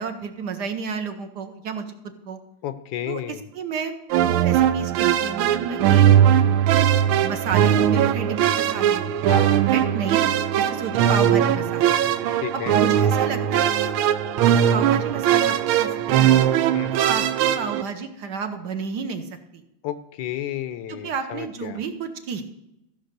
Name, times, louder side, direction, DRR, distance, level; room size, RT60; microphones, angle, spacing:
voice 1, 0.0-1.9 2.3-2.4 3.1-3.9 4.2-6.1 6.7-6.9 7.2-10.2 10.6-12.0 12.5-13.9 14.4-16.4 16.9-19.6 20.9-22.4, right 5 dB, 60° right, 6 dB, 1.3 m, -31 dB
voice 2, 2.6-3.4 9.2-9.6 12.4-12.8 16.7-17.0 19.8-21.8, left 11 dB, 75° left, 12 dB, 1.3 m, -32 dB
sound 1, 4.1-17.8, right 10 dB, 85° right, 1.5 m, -19 dB
14.5 x 5.3 x 6.6 m, 0.86 s
omnidirectional pair, 2.2 m